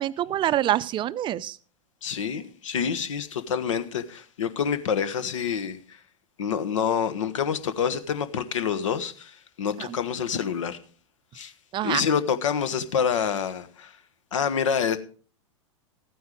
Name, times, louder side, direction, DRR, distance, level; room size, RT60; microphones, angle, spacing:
voice 1, 0.0-1.6 9.8-9.9 11.7-12.0, right 12 dB, 30° right, 0.5 m, -26 dB
voice 2, 2.0-6.0 6.4-10.8 11.3-11.5 11.8-13.9 14.3-15.0, left 7 dB, 70° left, 1.3 m, -27 dB
14.5 x 9.4 x 5.0 m
hypercardioid pair, 95°, 17 cm